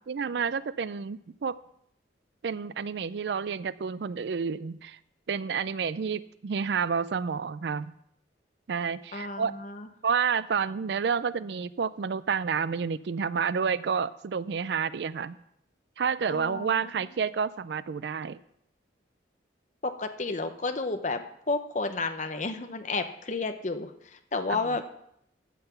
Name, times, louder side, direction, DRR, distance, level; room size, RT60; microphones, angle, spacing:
voice 1, 0.1-1.6 2.4-5.0 5.3-7.9 8.7-9.5 10.0-15.4 16.0-18.4 24.5-24.6, right 6 dB, 65° right, 17 dB, 0.4 m, -29 dB
voice 2, 9.1-9.9 16.3-16.7 19.8-24.8, left 3 dB, 40° left, 7 dB, 0.8 m, -31 dB
14.5 x 5.8 x 6.9 m, 0.73 s
head